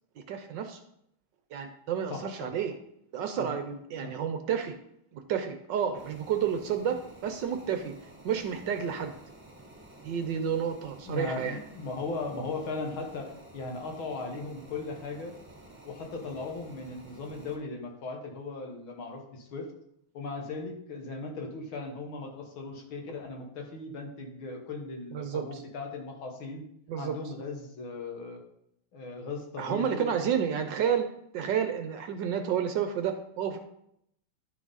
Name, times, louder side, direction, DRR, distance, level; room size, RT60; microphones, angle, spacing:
voice 1, 0.3-0.8 1.5-2.7 3.1-4.7 5.1-7.9 8.2-9.1 10.0-11.6 25.1-25.6 26.9-27.2 29.6-33.6, right 8 dB, 70° right, 7 dB, 1.2 m, -30 dB
voice 2, 2.1-2.5 3.4-3.5 4.0-4.1 11.1-15.3 15.8-19.7 20.1-26.6 27.0-28.4 28.9-30.1, left 3 dB, 70° left, 2 dB, 2.2 m, -38 dB
sound 1, 5.9-17.6, right 1 dB, 5° right, 1.5 m, -52 dB
11.5 x 5.9 x 4.0 m, 0.75 s
omnidirectional pair, 2.4 m